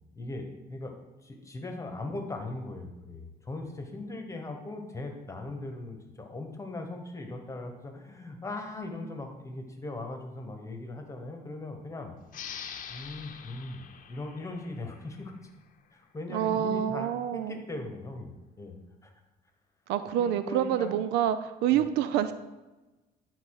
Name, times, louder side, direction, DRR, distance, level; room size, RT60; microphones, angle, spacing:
voice 1, 0.1-0.9 1.2-12.1 12.9-15.3 15.9-18.8 19.0-19.1 20.2-20.9 21.7-21.9, left 2 dB, 20° left, 4 dB, 1.2 m, -39 dB
sound 1, 12.3-15.6, left 7 dB, 50° left, 0.8 m, -44 dB
voice 2, 16.3-17.6 19.9-22.3, right 10 dB, 90° right, 12 dB, 0.4 m, -27 dB
11.0 x 4.0 x 4.8 m, 1.1 s
cardioid pair, 110°, 17 cm